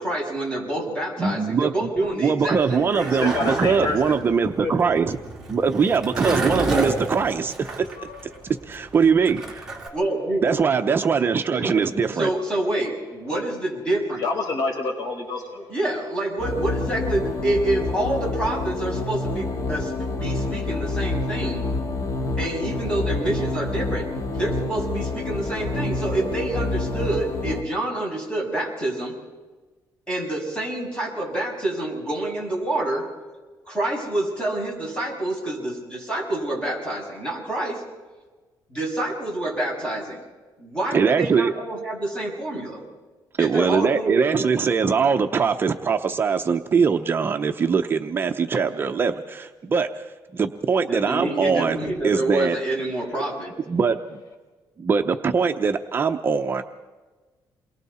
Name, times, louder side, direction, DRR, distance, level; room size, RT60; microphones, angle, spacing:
voice 1, 0.0-3.2 9.9-10.5 11.5-14.3 15.7-21.6 22.4-29.1 30.1-33.1 33.7-37.8 38.7-40.2 40.6-42.8 43.4-45.0 50.9-53.5, right 1 dB, 10° left, -2 dB, 7.2 m, -27 dB
voice 2, 1.2-1.9 2.2-5.2 5.5-7.9 8.7-9.7 10.4-12.3 40.9-41.5 43.4-50.1 50.3-51.8 52.0-52.6 53.7-54.2 54.8-56.6, right 5 dB, 30° right, 6 dB, 0.7 m, -22 dB
Skateboard, 2.4-9.9, right 2 dB, 5° right, 3.4 m, -30 dB
voice 3, 3.2-4.2 4.6-4.7 8.0-8.5 9.8-10.0 14.2-15.7, left 3 dB, 65° left, 2 dB, 4.8 m, -28 dB
sound 1, 16.4-27.6, left 2 dB, 45° left, 1.9 m, -28 dB
28.5 x 22.5 x 4.3 m, 1.3 s
cardioid pair, 150°, 7 cm